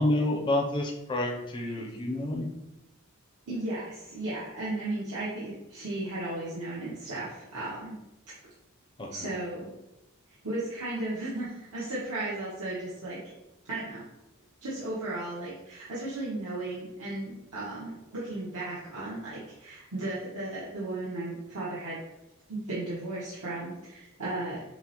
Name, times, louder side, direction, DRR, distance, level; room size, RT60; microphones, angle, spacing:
voice 1, 0.0-2.5 9.0-9.3, left 1 dB, 20° left, 0 dB, 0.4 m, -29 dB
voice 2, 3.5-7.9 9.1-9.7 10.4-13.3 13.6-14.1 14.6-22.0 22.5-24.6, right 2 dB, 80° right, -9 dB, 0.9 m, -35 dB
5.9 x 2.0 x 2.8 m, 0.93 s
head